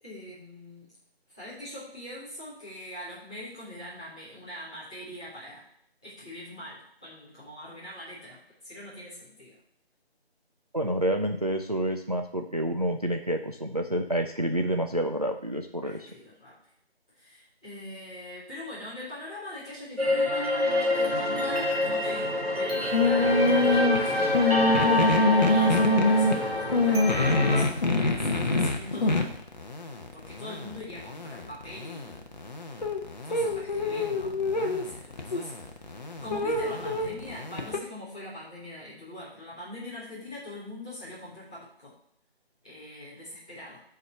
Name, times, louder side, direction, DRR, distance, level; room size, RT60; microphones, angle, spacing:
voice 1, 0.0-0.9 1.3-5.6 6.0-9.6 15.8-16.6 17.2-29.3 30.1-32.3 33.2-35.5 36.2-41.9 42.6-43.8, left 1 dB, 5° left, -13 dB, 0.8 m, -42 dB
voice 2, 10.7-16.1, right 1 dB, 40° right, 5 dB, 0.4 m, -28 dB
sound 1, 20.0-27.6, left 1 dB, 70° right, 2.0 m, -26 dB
sound 2, 22.9-37.8, left 2 dB, 40° left, 0.9 m, -26 dB
6.1 x 4.7 x 6.6 m, 0.67 s
figure-of-eight pair, 160°, 32 cm